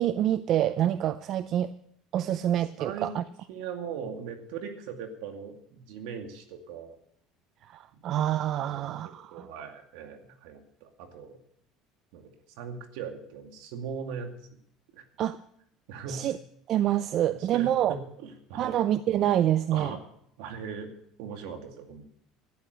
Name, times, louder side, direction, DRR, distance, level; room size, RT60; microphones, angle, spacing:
voice 1, 0.0-1.7 2.1-3.2 7.7-9.5 15.2-15.4 16.1-16.4 16.7-17.9 18.6-20.0, right 11 dB, 55° right, 14 dB, 0.5 m, -26 dB
voice 2, 2.8-3.1 3.5-7.0 8.6-11.4 12.1-14.3 14.9-15.0 15.9-16.2 17.3-18.8 19.7-20.0 20.4-20.9 21.2-22.0, right 6 dB, 80° right, 5 dB, 2.3 m, -39 dB
13.0 x 10.5 x 6.8 m, 0.69 s
supercardioid pair, 100°, 0 cm